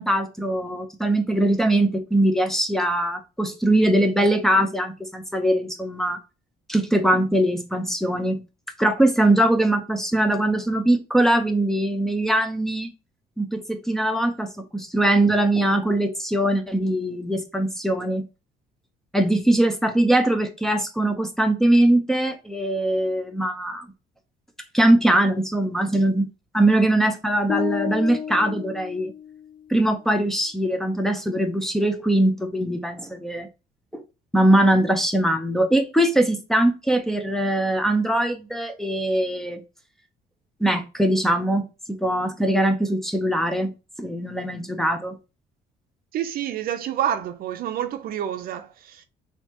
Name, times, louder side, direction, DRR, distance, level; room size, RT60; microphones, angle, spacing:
voice 1, 0.0-6.2 6.7-8.4 8.8-12.9 13.4-18.2 19.1-23.9 24.7-26.3 26.5-29.1 29.7-33.5 33.9-34.0 34.3-39.6 40.6-43.7 44.0-45.2, right 1 dB, ahead, 0.7 m, -21 dB
sound 1, 27.5-29.7, left 8 dB, 30° left, 0.4 m, -31 dB
voice 2, 46.1-49.0, right 10 dB, 60° right, 0.6 m, -28 dB
4.1 x 2.8 x 2.9 m
cardioid pair, 110°, 17 cm